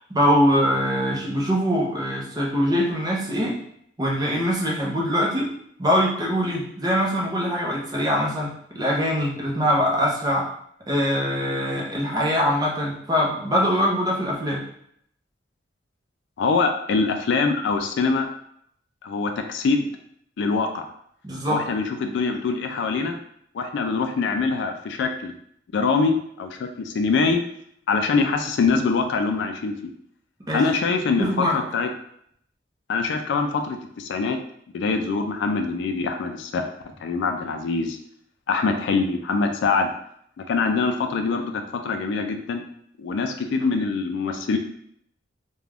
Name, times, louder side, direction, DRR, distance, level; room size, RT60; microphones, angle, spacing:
voice 1, 0.1-3.6 4.0-5.5 5.8-10.5 10.9-14.6 21.2-21.6 30.5-30.6 31.2-31.6, equal, 20° right, -3 dB, 0.6 m, -23 dB
voice 2, 16.4-18.3 19.0-19.9 20.4-20.9 21.5-23.1 23.5-25.3 25.7-27.4 27.9-29.7 30.5-31.9 32.9-34.4 34.7-36.6 37.0-38.0 38.5-39.9 40.4-42.6 43.0-44.6, left 4 dB, 65° left, 5 dB, 0.3 m, -24 dB
2.4 x 2.2 x 3.3 m, 0.69 s
head